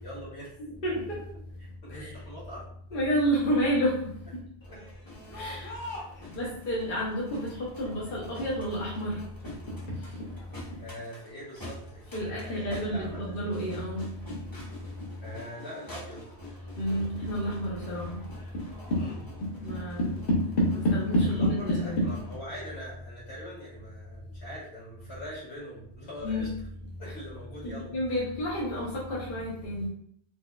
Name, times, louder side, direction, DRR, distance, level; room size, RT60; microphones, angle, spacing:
voice 1, 0.0-0.6 1.6-2.7 4.7-4.8 6.1-6.3 10.8-13.4 15.2-16.3 18.9-19.2 21.2-21.5 21.8-26.5 27.0-28.0, equal, 75° left, -7 dB, 1.9 m, -43 dB
voice 2, 0.6-1.2 1.9-2.1 2.9-4.2 5.3-5.7 6.3-9.2 12.1-14.1 16.8-18.2 19.6-20.1 20.6-22.1 26.2-26.4 27.6-29.9, equal, 55° left, -5 dB, 0.9 m, -29 dB
Crowd, 4.6-22.4, left 1 dB, 20° left, 0.9 m, -46 dB
4.3 x 2.3 x 2.3 m, 0.64 s
omnidirectional pair, 1.1 m